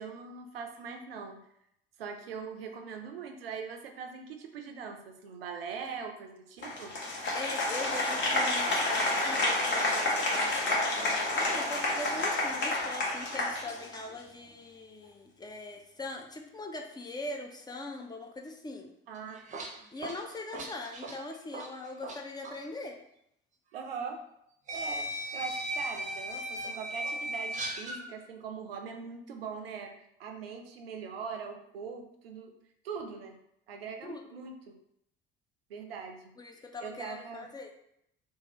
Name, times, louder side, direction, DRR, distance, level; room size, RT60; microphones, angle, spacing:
voice 1, 0.0-1.4 2.0-6.9 19.1-19.4 20.5-20.6 23.7-24.2 24.7-32.5 32.8-33.4 33.7-34.8 35.7-36.3 36.8-37.5, right 6 dB, 75° right, 5 dB, 0.5 m, -41 dB
Applause, 6.6-14.2, left 2 dB, 40° left, 1.0 m, -29 dB
voice 2, 7.3-18.9 19.9-23.0 34.0-34.2 36.4-37.7, left 2 dB, 15° left, 2 dB, 0.3 m, -41 dB
sound 1, 19.2-22.2 22.4-22.6 23.7-23.8 24.7-28.0, right 1 dB, 25° right, 0.6 m, -37 dB
2.6 x 2.4 x 2.9 m, 0.75 s
figure-of-eight pair, 55°, 30 cm